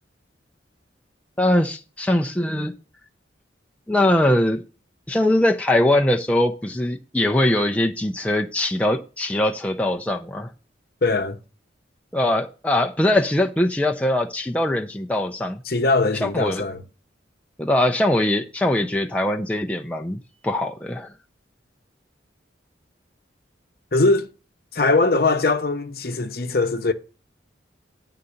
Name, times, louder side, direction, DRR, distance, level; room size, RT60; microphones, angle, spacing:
voice 1, 1.4-2.7 3.9-4.6 5.1-10.5 12.1-15.6 16.2-16.6 17.6-21.1, left 1 dB, 5° left, 0.4 m, -21 dB
voice 2, 11.0-11.4 15.7-16.8 23.9-24.3 24.7-26.9, left 3 dB, 55° left, 0.8 m, -21 dB
9.6 x 3.9 x 7.0 m
head